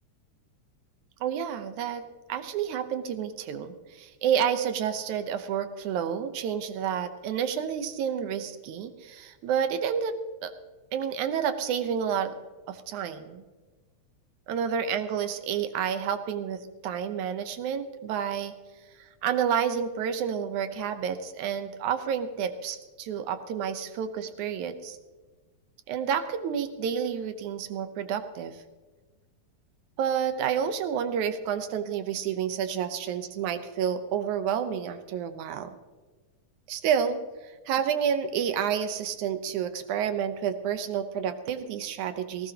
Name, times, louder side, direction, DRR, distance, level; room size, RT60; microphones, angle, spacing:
voice 1, 1.2-10.1 10.4-10.5 10.9-12.4 12.7-13.4 14.5-18.5 19.0-25.0 25.9-28.6 30.0-35.7 36.7-42.5, right 8 dB, 85° right, 9 dB, 2.3 m, -30 dB
18.0 x 17.5 x 2.9 m, 1.3 s
omnidirectional pair, 3.4 m